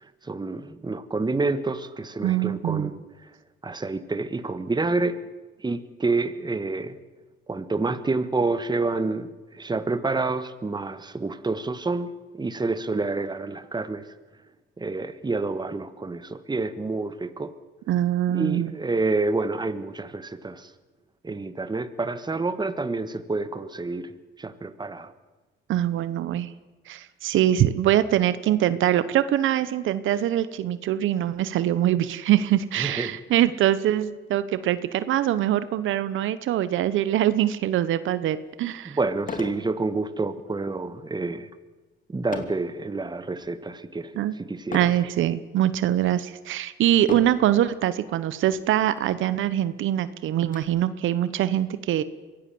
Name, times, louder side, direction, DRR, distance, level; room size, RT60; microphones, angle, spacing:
voice 1, 0.2-3.0 3.6-5.2 5.6-7.0 7.5-14.1 14.8-17.5 18.3-20.7 21.2-24.1 24.4-25.1 32.8-33.1 38.8-41.5 42.1-44.8, right 3 dB, 20° right, 12 dB, 1.5 m, -28 dB
voice 2, 2.2-2.9 17.9-18.7 25.7-26.5 26.9-39.0 44.2-44.3 44.7-52.0, right 12 dB, 80° right, 15 dB, 0.9 m, -23 dB
sound 1, 38.3-38.4 39.2-39.7 40.1-40.4 42.3-42.7 43.3-43.7 44.7-45.1 45.8-45.9 47.0-47.5 48.5-48.6 49.0-49.1 49.5-50.6, left 4 dB, 40° left, 2.6 m, -36 dB
24.0 x 17.0 x 7.7 m, 1.2 s
cardioid pair, 90°, 20 cm